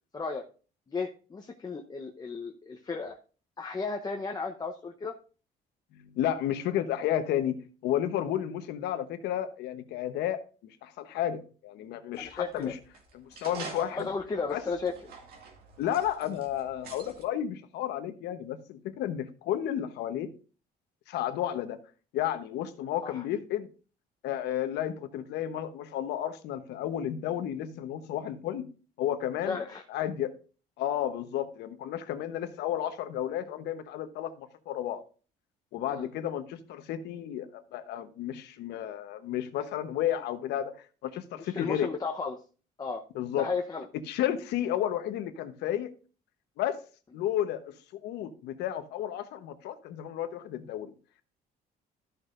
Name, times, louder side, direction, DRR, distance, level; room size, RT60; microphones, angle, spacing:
voice 1, 0.1-0.4 0.9-3.2 3.6-5.1 12.2-12.7 13.9-14.9 23.0-23.2 29.5-29.8 35.9-36.1 41.3-42.4 42.8-43.0 43.4-43.9, left 4 dB, 25° left, 0.8 m, -34 dB
voice 2, 5.9-12.8 13.1-14.1 14.5-14.6 15.8-20.3 21.1-21.8 22.1-23.7 24.2-28.7 29.0-29.6 29.9-30.3 30.8-35.0 35.7-40.8 41.0-41.9 43.1-43.5 44.1-45.9 46.6-46.8 47.1-47.7 48.0-50.9, left 11 dB, 80° left, 1.1 m, -32 dB
sound 1, 12.1-17.2, right 5 dB, 65° right, 2.1 m, -47 dB
13.5 x 6.7 x 2.5 m
cardioid pair, 110°, 17 cm